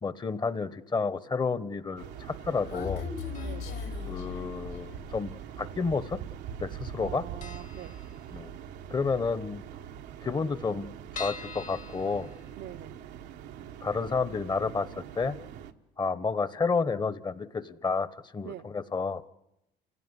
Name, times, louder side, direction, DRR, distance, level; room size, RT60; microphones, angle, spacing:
voice 1, 0.0-3.0 4.1-6.2 6.6-7.2 8.3-8.5 8.9-9.6 10.2-10.9 11.1-12.3 13.8-15.4 16.0-19.2, left 4 dB, 25° left, 1.1 m, -30 dB
sound 1, 2.0-15.7, right 9 dB, 85° right, 1.2 m, -43 dB
Human voice, 2.1-5.1, left 7 dB, 80° left, 5.4 m, -38 dB
sound 2, 3.3-4.1 5.2-5.9 6.1-6.3 6.6-6.7 7.0-7.1 7.4-8.7 9.1-9.2 9.5-9.6 9.7-9.8 10.3-13.0 13.4-13.5 13.9-14.0, left 5 dB, 50° left, 1.6 m, -45 dB
voice 2, 3.4-3.8 7.0-8.0 12.6-13.0 18.4-18.7, right 11 dB, 70° right, 0.8 m, -43 dB
29.5 x 16.5 x 9.8 m
cardioid pair, 110°, 17 cm